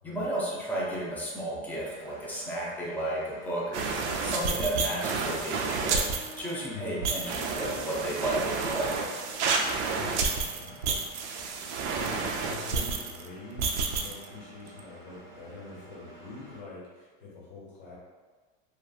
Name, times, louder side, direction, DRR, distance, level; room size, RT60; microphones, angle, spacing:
voice 1, 0.0-6.1 6.4-9.0, right 1 dB, 5° left, -5 dB, 0.5 m, -33 dB
Engine, 1.7-16.6, right 2 dB, 10° right, 1.0 m, -51 dB
sound 1, 3.7-13.3 13.6-14.3 14.7-14.8, right 4 dB, 85° right, 0.5 m, -30 dB
Wind instrument woodwind instrument, 5.9-10.0, left 1 dB, 90° left, 0.8 m, -50 dB
voice 2, 6.7-7.1 9.7-10.8 11.6-17.9, left 3 dB, 75° left, -6 dB, 1.4 m, -45 dB
2.9 x 2.5 x 2.3 m, 1.4 s
supercardioid pair, 120°, 34 cm